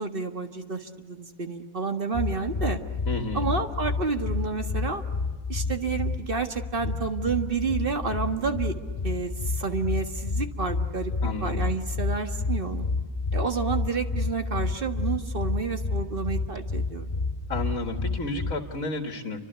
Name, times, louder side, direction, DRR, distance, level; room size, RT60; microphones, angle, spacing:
voice 1, 0.0-2.8 3.3-5.0 5.5-8.8 9.0-11.1 11.4-12.9 13.3-17.2, right 4 dB, 40° right, 6 dB, 1.8 m, -30 dB
sound 1, 2.1-18.5, left 3 dB, 25° left, 2.8 m, -30 dB
voice 2, 3.1-3.5 11.2-11.6 17.5-19.4, left 2 dB, 70° left, 5 dB, 2.2 m, -31 dB
29.5 x 24.5 x 8.1 m, 1.5 s
omnidirectional pair, 1.5 m